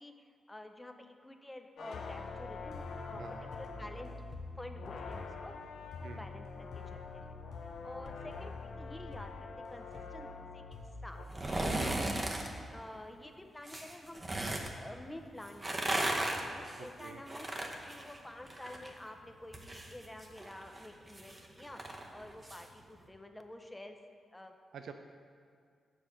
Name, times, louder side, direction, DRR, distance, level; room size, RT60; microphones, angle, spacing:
voice 1, 0.0-3.2 3.5-4.1 4.6-5.5 5.9-7.3 7.8-11.2 11.5-12.3 12.7-16.1 16.5-24.0 24.3-24.6, left 1 dB, 10° left, 5 dB, 0.6 m, -50 dB
sound 1, 1.8-11.2, left 4 dB, 80° left, 0.5 m, -44 dB
voice 2, 3.1-3.5 6.0-6.3 16.8-17.2 24.7-24.9, right 6 dB, 85° right, 6 dB, 0.3 m, -48 dB
sound 2, 11.3-12.5 13.6-14.7 15.5-18.9 19.2-22.6 23.0-23.1, right 1 dB, 25° right, 0.8 m, -36 dB
7.1 x 4.3 x 6.4 m, 2.1 s
cardioid pair, 100°, 0 cm